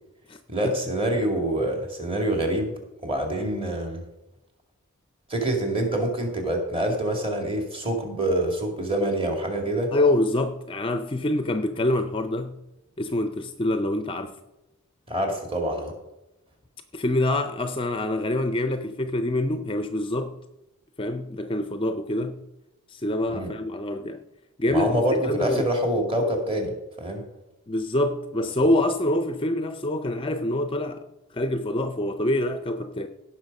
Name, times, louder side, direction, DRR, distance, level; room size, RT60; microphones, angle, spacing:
voice 1, 0.5-4.0 5.3-9.9 15.1-15.9 23.3-23.5 24.7-27.2, right 1 dB, 25° right, 2.1 m, -26 dB
voice 2, 9.9-12.6 13.0-14.3 16.9-20.3 21.0-22.4 22.9-24.2 24.6-25.0 25.3-25.6 27.7-31.1 31.3-33.1, left 1 dB, 25° left, 0.4 m, -25 dB
16.5 x 6.1 x 5.3 m
head